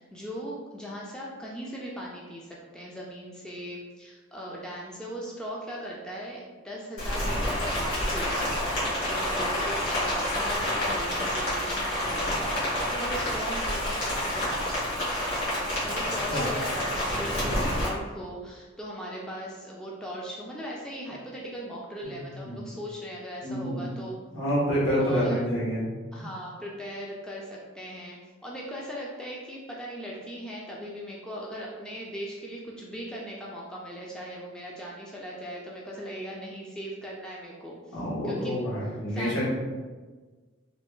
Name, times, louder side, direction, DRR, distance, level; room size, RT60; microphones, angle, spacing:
voice 1, 0.0-15.5 15.8-24.2 25.0-25.4 26.1-38.6 39.1-39.4, equal, 5° left, -4 dB, 0.3 m, -39 dB
Rain, 7.0-17.9, left 1 dB, 60° left, 1.5 m, -28 dB
voice 2, 22.1-22.6 23.4-23.9 24.3-25.8 37.9-39.5, equal, 75° left, -7 dB, 1.4 m, -28 dB
3.2 x 2.2 x 3.1 m, 1.3 s
head